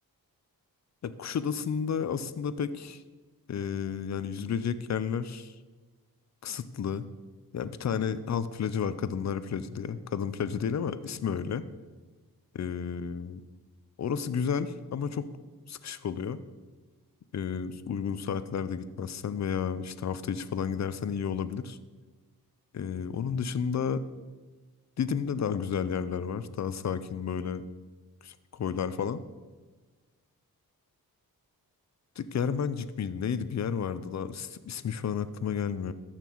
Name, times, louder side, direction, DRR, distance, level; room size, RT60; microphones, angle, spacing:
voice 1, 1.0-3.0 3.5-5.5 6.4-7.1 7.5-11.6 12.5-13.4 14.0-15.3 15.7-16.4 17.3-21.8 22.7-24.0 25.0-27.6 28.2-29.2 32.2-35.9, left 7 dB, 50° left, 14 dB, 0.6 m, -32 dB
14.0 x 5.9 x 4.6 m, 1.3 s
wide cardioid pair, 100°, 37 cm